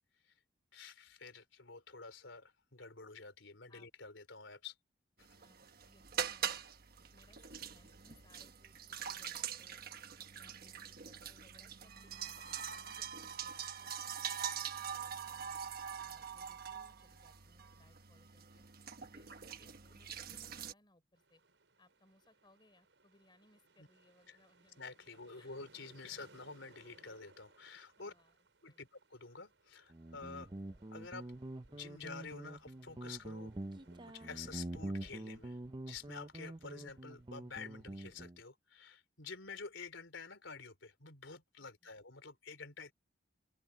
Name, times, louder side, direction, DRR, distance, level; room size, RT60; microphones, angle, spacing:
voice 1, 0.7-4.7 5.2-5.4 23.8-23.9 24.3-24.4 24.8-28.1 28.6-30.5 30.9-31.3 31.7-33.5 34.0-35.6 35.9-42.9, left 4 dB, 75° left, 3.8 m, -49 dB
sound 1, 5.2-20.7, right 8 dB, 50° right, 1.2 m, -44 dB
voice 2, 5.8-6.7 7.1-9.8 10.2-15.5 16.0-18.6 19.0-21.4 21.8-24.8 25.4-25.6 28.0-28.4 28.6-28.9 41.6-41.9, left 1 dB, 25° left, 4.5 m, -68 dB
sound 2, 21.1-38.2, right 3 dB, 70° right, 6.9 m, -68 dB
Guitar, 29.9-38.4, right 1 dB, 25° right, 0.7 m, -46 dB
open air
head